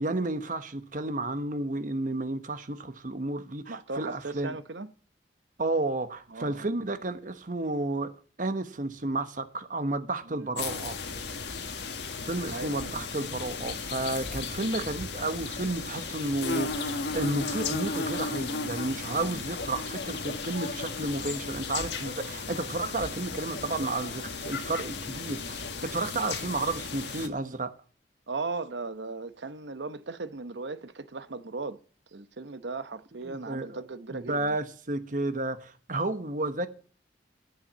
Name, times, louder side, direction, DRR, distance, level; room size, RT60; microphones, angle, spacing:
voice 1, 0.0-4.5 5.6-8.1 8.4-11.0 12.2-27.7 33.2-33.8 34.1-36.7, right 2 dB, 50° right, 1.2 m, -32 dB
voice 2, 3.7-4.9 6.3-6.7 10.3-10.5 12.5-13.1 19.1-19.4 28.3-31.8 32.1-34.6, right 3 dB, 85° right, 0.9 m, -37 dB
sound 1, 10.6-27.3, left 4 dB, 75° left, 1.6 m, -35 dB
10.5 x 8.3 x 8.0 m
head